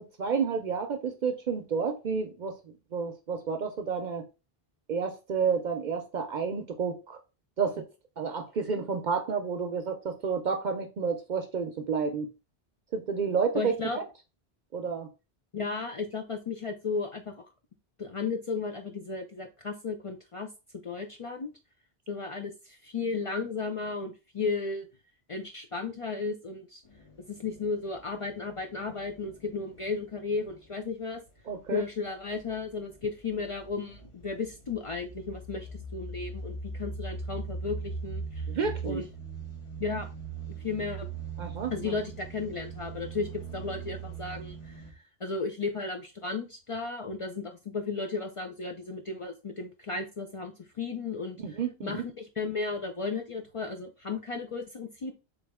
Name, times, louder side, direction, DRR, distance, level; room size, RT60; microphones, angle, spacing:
voice 1, 0.0-2.5 2.9-4.2 4.9-7.2 7.6-7.8 8.2-12.3 12.9-14.0 14.7-15.1 31.5-31.8 38.5-39.0 41.4-41.9 51.4-52.0, right 5 dB, 55° right, 0.6 m, -30 dB
voice 2, 13.5-14.0 15.5-17.3 18.0-20.5 20.8-21.5 22.1-24.9 25.3-26.8 27.3-31.2 31.7-38.5 38.8-39.1 39.8-40.1 40.6-41.1 41.7-44.8 45.2-55.1, left 4 dB, 55° left, 0.3 m, -34 dB
sound 1, 26.8-27.1 27.4-30.5 32.5-32.6 33.3-44.9, right 4 dB, 35° left, 0.7 m, -39 dB
3.8 x 3.1 x 3.4 m
omnidirectional pair, 1.0 m